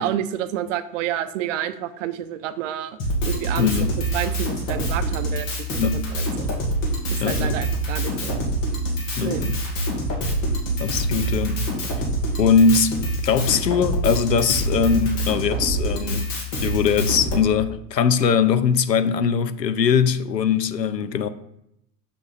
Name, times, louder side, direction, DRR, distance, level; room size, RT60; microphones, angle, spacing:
voice 1, 0.0-3.0 3.3-3.7 4.1-5.5 5.7-6.5 7.1-8.4 9.2-9.4, right 11 dB, 50° right, 0.6 m, -29 dB
Drum kit, 3.0-17.4, right 1 dB, 50° left, 2.0 m, -25 dB
voice 2, 3.6-3.9 5.8-6.0 7.2-7.6 9.2-9.6 10.8-11.7 12.4-13.0 13.2-16.3 16.6-21.3, left 6 dB, 85° left, 0.6 m, -21 dB
7.2 x 4.7 x 4.1 m
figure-of-eight pair, 85°, 49 cm